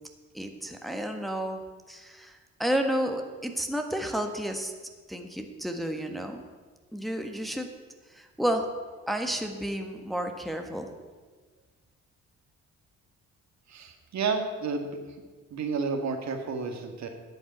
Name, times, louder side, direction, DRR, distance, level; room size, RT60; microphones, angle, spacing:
voice 1, 0.3-4.7 5.1-6.4 6.9-7.7 8.1-8.7 9.1-10.9, equal, ahead, 4 dB, 1.5 m, -31 dB
voice 2, 13.7-15.0 15.5-17.1, right 4 dB, 65° right, 5 dB, 1.9 m, -31 dB
11.0 x 7.2 x 9.3 m, 1.4 s
cardioid pair, 90°, 30 cm